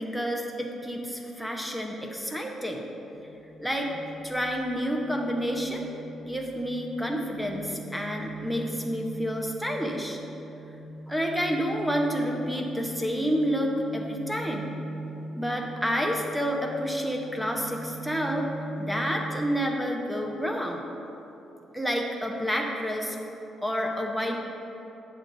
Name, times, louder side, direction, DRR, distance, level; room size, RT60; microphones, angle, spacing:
voice 1, 0.0-2.8 3.6-5.9 6.3-10.2 11.1-14.7 15.3-18.5 18.8-20.8 21.7-23.2 23.6-24.4, equal, 5° right, 1 dB, 0.8 m, -29 dB
sound 1, 3.1-19.4, right 2 dB, 35° right, 1.7 m, -41 dB
7.9 x 6.2 x 4.0 m, 3.0 s
cardioid pair, 90°, 0 cm